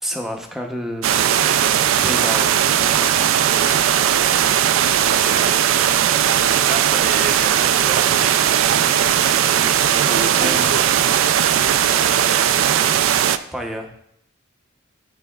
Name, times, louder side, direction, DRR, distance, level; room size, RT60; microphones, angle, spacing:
voice 1, 0.0-1.1 2.0-2.6 2.9-3.3 10.3-10.7 13.5-13.9, equal, ahead, 2 dB, 0.7 m, -29 dB
sound 1, 1.0-13.4, right 10 dB, 80° right, 0.3 m, -17 dB
voice 2, 5.1-5.6 6.7-8.6 9.9-10.8 11.3-11.5, right 3 dB, 45° right, 6 dB, 0.6 m, -30 dB
11.0 x 4.0 x 2.3 m, 0.73 s
head